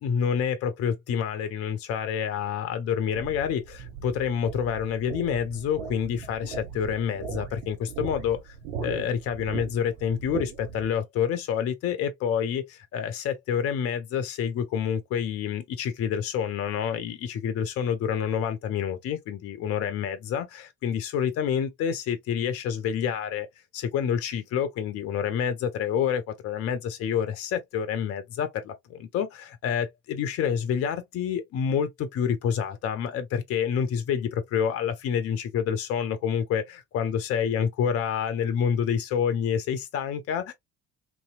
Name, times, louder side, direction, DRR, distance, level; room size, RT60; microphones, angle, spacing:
voice 1, 0.0-8.6 8.8-23.5 23.7-40.5, left 8 dB, 35° left, 0.5 m, -28 dB
sound 1, 3.1-10.9, right 6 dB, 70° right, 0.9 m, -39 dB
2.9 x 2.7 x 2.4 m
figure-of-eight pair, 50°, 41 cm